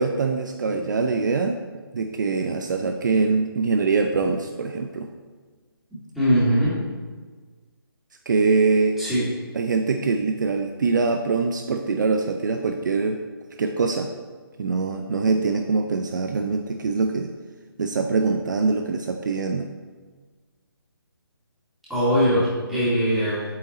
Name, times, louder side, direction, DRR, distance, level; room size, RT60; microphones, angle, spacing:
voice 1, 0.0-1.6 1.9-5.1 8.3-8.9 9.5-13.2 13.6-14.1 14.6-17.3 17.8-19.7, right 4 dB, 50° right, 5 dB, 0.6 m, -23 dB
voice 2, 6.1-6.8 9.0-9.2 21.9-23.4, equal, ahead, -13 dB, 2.5 m, -21 dB
8.1 x 6.5 x 4.2 m, 1.4 s
hypercardioid pair, 165°, 13 cm